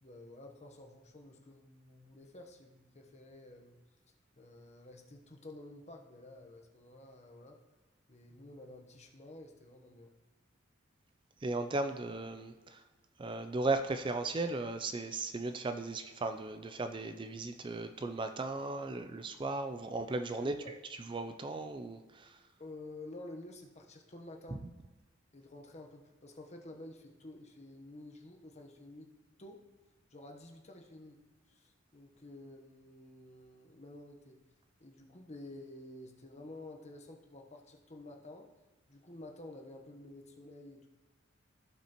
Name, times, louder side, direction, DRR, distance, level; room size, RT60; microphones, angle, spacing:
voice 1, 0.0-3.8 4.4-7.6 8.1-10.1 20.4-20.7 22.6-24.6 25.3-29.1 29.4-29.6 30.1-31.2 31.5-34.4 34.8-38.5 38.9-40.9, left 2 dB, 35° left, 3 dB, 1.0 m, -51 dB
voice 2, 11.4-12.8 13.2-20.6 21.1-22.4 24.5-24.6, right 2 dB, 25° right, 8 dB, 0.4 m, -36 dB
16.0 x 5.7 x 3.0 m, 1.3 s
head